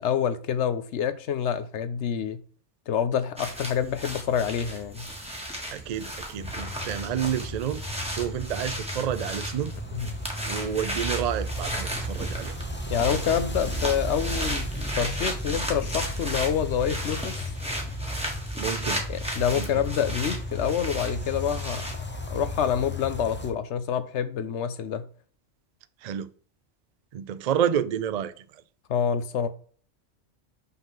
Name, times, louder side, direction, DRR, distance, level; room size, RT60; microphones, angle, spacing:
voice 1, 0.0-2.4 2.9-5.1 9.9-10.1 12.9-17.4 19.1-21.8 22.3-25.0 28.9-29.5, left 8 dB, 70° left, 1.0 m, -27 dB
sound 1, 3.4-21.9, right 1 dB, 5° right, 1.5 m, -35 dB
voice 2, 5.7-7.8 8.1-9.7 10.5-12.6 18.6-19.0 19.5-19.7 26.0-26.3 27.1-28.4, right 9 dB, 75° right, 0.3 m, -29 dB
sound 2, 6.4-23.5, equal, 10° left, 0.7 m, -35 dB
5.7 x 3.7 x 5.8 m
omnidirectional pair, 1.2 m